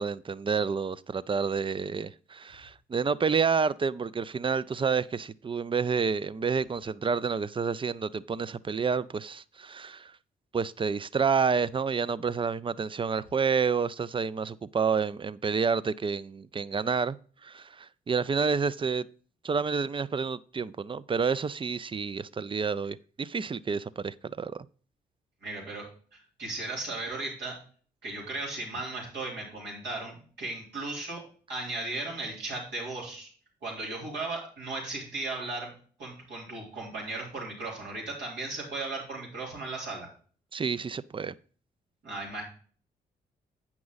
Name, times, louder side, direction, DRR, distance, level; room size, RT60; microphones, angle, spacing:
voice 1, 0.0-10.1 10.5-17.2 17.4-19.1 19.4-24.7 40.5-41.3, right 5 dB, 30° right, 0.5 m, -29 dB
voice 2, 25.4-25.9 26.4-27.6 28.0-31.2 31.5-33.3 33.6-35.7 36.0-40.1 42.0-42.4, right 2 dB, 80° right, 3.6 m, -36 dB
8.5 x 6.0 x 4.0 m
supercardioid pair, 50°, 18 cm